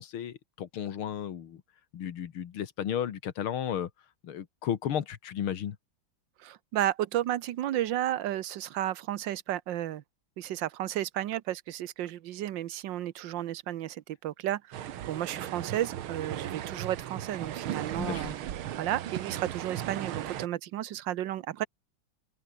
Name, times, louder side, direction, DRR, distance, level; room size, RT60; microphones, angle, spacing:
voice 1, 0.0-1.6 1.9-3.9 4.2-5.8 18.0-18.3, left 9 dB, 90° left, 2.3 m, -34 dB
voice 2, 6.4-10.0 10.4-18.3 18.8-21.7, right 12 dB, 70° right, 1.5 m, -33 dB
sound 1, 14.7-20.5, right 11 dB, 85° right, 2.0 m, -36 dB
omnidirectional pair, 2.2 m